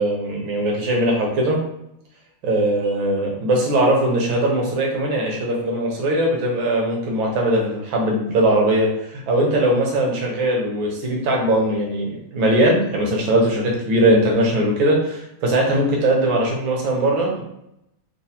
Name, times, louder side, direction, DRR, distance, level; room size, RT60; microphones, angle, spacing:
voice 1, 0.0-1.6 2.4-17.4, right 1 dB, 75° right, -1 dB, 1.7 m, -20 dB
4.4 x 2.2 x 2.8 m, 0.79 s
omnidirectional pair, 2.2 m